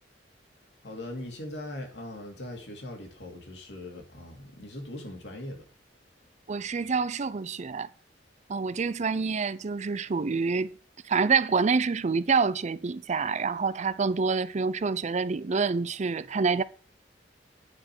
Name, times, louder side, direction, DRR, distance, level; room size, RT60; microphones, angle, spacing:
voice 1, 0.8-5.7, left 1 dB, 70° left, 2.5 m, -40 dB
voice 2, 6.5-7.9 8.5-10.7 11.0-16.6, right 4 dB, 40° right, 0.5 m, -27 dB
9.7 x 5.1 x 6.0 m
head